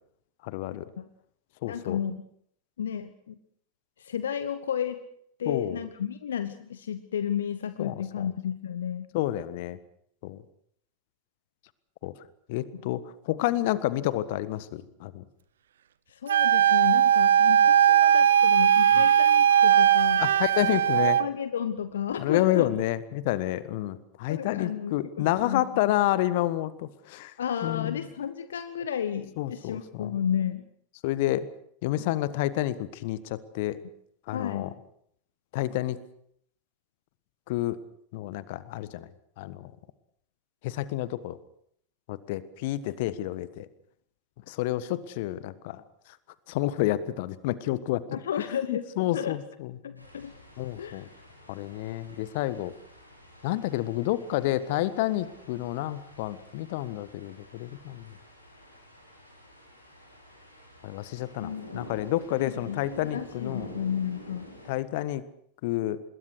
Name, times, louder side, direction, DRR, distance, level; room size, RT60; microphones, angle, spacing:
voice 1, 0.4-0.9 1.6-2.0 5.4-5.8 7.8-8.0 9.1-9.8 10.2-10.4 12.0-12.1 12.5-15.2 18.9-19.0 20.2-21.2 22.2-27.3 27.6-28.0 29.4-30.1 31.0-31.5 31.8-33.8 34.3-34.7 35.5-36.0 37.5-37.8 38.1-39.1 39.4-39.7 40.6-41.4 42.1-43.7 44.5-45.8 46.5-48.0 48.7-49.7 50.6-51.1 51.5-52.7 53.4-58.1 60.8-63.7 64.7-65.2 65.6-66.0, left 15 dB, 50° left, 16 dB, 1.4 m, -29 dB
voice 2, 1.6-2.2 2.8-3.4 4.0-5.0 5.4-9.1 12.7-12.9 16.1-20.2 21.0-22.7 24.3-25.7 27.4-30.6 34.3-34.7 48.1-48.8 49.1-49.4 49.8-50.3 50.8-51.0 61.4-61.9 62.4-62.8 63.0-64.5, left 8 dB, 65° left, 12 dB, 1.1 m, -32 dB
Wind instrument woodwind instrument, 16.3-21.3, right 9 dB, 65° right, 0.9 m, -19 dB
sound 1, 50.0-64.7, equal, 90° left, 5.5 m, -49 dB
26.0 x 21.5 x 6.4 m, 0.68 s
figure-of-eight pair, 90°, 0 cm